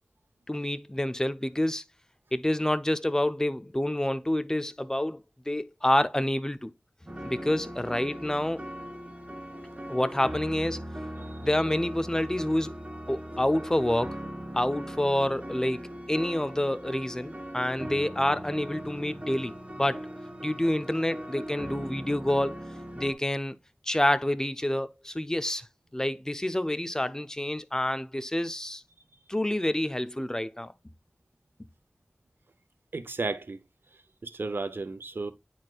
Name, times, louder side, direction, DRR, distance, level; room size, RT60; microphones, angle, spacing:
voice 1, 0.5-1.8 2.3-5.2 5.5-6.7 7.2-8.7 9.9-10.8 11.4-12.7 13.1-14.2 14.5-20.1 20.4-22.6 23.0-23.5 23.9-25.6 25.9-28.8 29.3-30.7, left 1 dB, 15° left, 0.6 m, -28 dB
sound 1, 7.1-23.1, equal, 30° right, 1.7 m, -39 dB
voice 2, 32.9-33.6 34.2-35.3, right 3 dB, 80° right, 0.7 m, -33 dB
9.3 x 4.3 x 2.4 m
wide cardioid pair, 60°, 4 cm